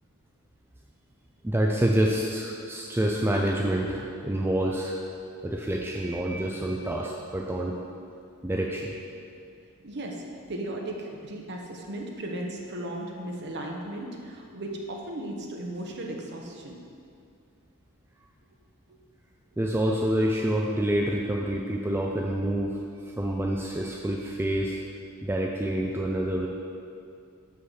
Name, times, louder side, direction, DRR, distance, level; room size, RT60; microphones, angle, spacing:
voice 1, 1.4-5.0 5.4-7.8 8.4-8.9 19.6-24.8 25.2-26.5, right 1 dB, 10° right, -1 dB, 0.4 m, -27 dB
voice 2, 9.8-16.8 18.9-19.0, right 1 dB, 50° right, 0 dB, 1.0 m, -36 dB
5.7 x 5.6 x 6.4 m, 2.4 s
head